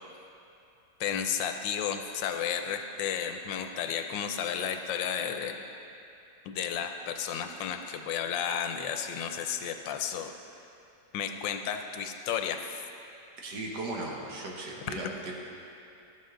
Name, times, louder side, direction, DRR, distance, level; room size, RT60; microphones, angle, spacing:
voice 1, 1.0-5.6 6.4-10.3 11.1-12.7, left 8 dB, 90° left, 6 dB, 1.4 m, -32 dB
voice 2, 13.4-15.4, right 2 dB, 70° right, -1 dB, 1.8 m, -37 dB
12.5 x 7.5 x 3.8 m, 2.7 s
omnidirectional pair, 2.0 m